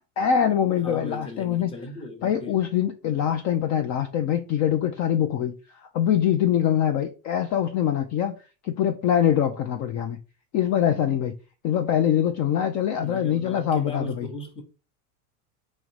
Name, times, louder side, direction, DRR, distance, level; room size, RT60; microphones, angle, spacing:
voice 1, 0.0-1.7 2.2-5.5 5.8-8.4 8.6-10.2 10.5-11.3 11.6-14.3, left 9 dB, 40° left, 0.5 m, -23 dB
voice 2, 0.8-2.6 12.9-14.6, left 2 dB, 10° left, 0.8 m, -37 dB
3.6 x 3.1 x 3.2 m
supercardioid pair, 115°, 45 cm